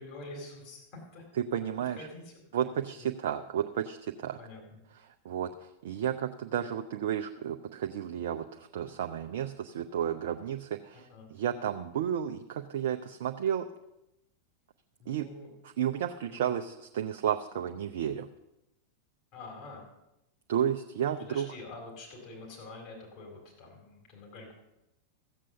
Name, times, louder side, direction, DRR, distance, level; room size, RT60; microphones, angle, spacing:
voice 1, 0.0-1.2 1.9-2.3 2.6-2.7 3.0-3.1 4.3-4.6 11.1-11.3 15.0-15.5 16.3-16.5 19.3-19.8 21.0-24.5, left 2 dB, 45° left, -1 dB, 4.2 m, -46 dB
voice 2, 1.4-2.1 2.5-4.4 5.2-13.7 15.1-15.3 15.8-18.3 20.5-21.5, right 9 dB, 55° right, 5 dB, 0.5 m, -32 dB
14.5 x 7.5 x 6.7 m, 0.90 s
figure-of-eight pair, 90°, 0 cm